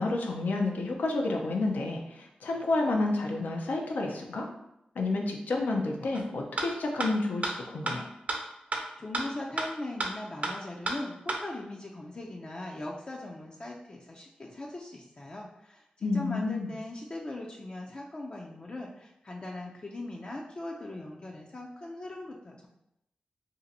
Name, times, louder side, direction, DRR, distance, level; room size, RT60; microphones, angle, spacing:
voice 1, 0.0-4.5 5.0-8.1 16.0-16.7, left 2 dB, 90° left, 1 dB, 0.5 m, -30 dB
sound 1, 6.1-6.2 6.6-6.7 7.0-7.1 7.4-7.5 7.9-8.0 8.3-8.4 8.7-8.8 9.1-9.2 9.6-9.7 10.0-10.1 10.4-10.5 10.9-11.0 11.3-11.4, right 2 dB, 55° right, 0.6 m, -29 dB
voice 2, 9.0-22.7, left 2 dB, 40° left, -1 dB, 0.4 m, -40 dB
2.7 x 2.5 x 4.0 m, 0.83 s
cardioid pair, 70°, 3 cm